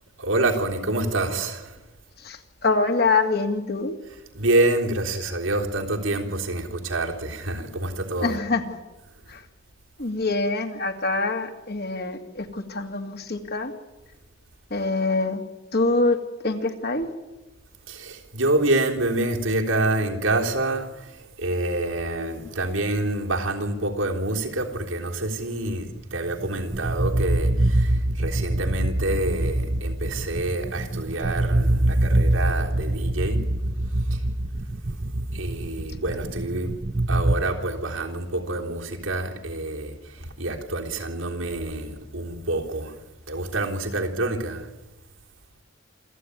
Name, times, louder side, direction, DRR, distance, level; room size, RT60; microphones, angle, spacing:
voice 1, 0.2-1.8 4.3-8.4 17.9-33.4 33.9-34.2 35.3-36.7 37.1-43.0 43.3-44.7, right 2 dB, 90° right, 0 dB, 3.6 m, -27 dB
voice 2, 2.2-3.9 8.2-8.8 9.3-9.4 10.0-13.7 14.7-15.4 15.7-16.2 16.4-17.1, left 3 dB, 55° left, 6 dB, 2.2 m, -25 dB
sound 1, 26.3-37.4, right 1 dB, 35° right, 0.9 m, -24 dB
27.0 x 14.5 x 9.7 m, 1.1 s
head